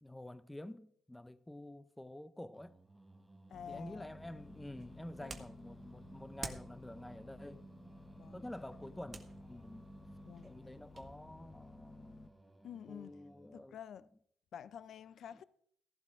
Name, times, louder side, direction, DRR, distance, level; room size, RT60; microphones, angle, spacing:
voice 1, 0.0-2.8 3.7-7.6 8.3-9.9 10.4-12.3 12.9-13.8, left 1 dB, 10° left, 0.7 m, -49 dB
Singing, 2.5-13.7, right 2 dB, 10° right, 1.0 m, -57 dB
voice 2, 3.5-4.1 5.2-5.4 8.2-8.5 10.3-10.5 12.6-13.2 13.5-14.1 14.5-15.4, left 8 dB, 65° left, 0.5 m, -49 dB
sound 1, 3.5-12.3, left 4 dB, 35° left, 1.0 m, -57 dB
sound 2, 4.4-11.1, right 4 dB, 40° right, 1.7 m, -53 dB
16.0 x 11.5 x 3.7 m
cardioid pair, 90°, 0 cm